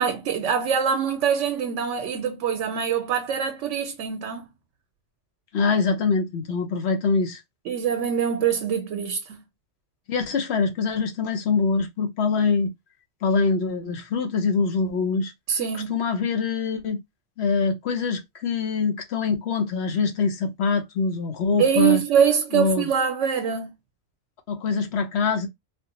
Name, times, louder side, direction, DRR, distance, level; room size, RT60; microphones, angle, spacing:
voice 1, 0.0-4.5 7.7-9.4 15.5-15.9 21.6-23.7, right 7 dB, 85° right, 0.9 m, -24 dB
voice 2, 5.5-7.4 10.1-12.7 13.2-15.3 15.7-17.0 17.4-22.0 22.5-22.9 24.5-25.5, left 4 dB, 65° left, 0.9 m, -24 dB
3.4 x 2.1 x 2.8 m
omnidirectional pair, 1.2 m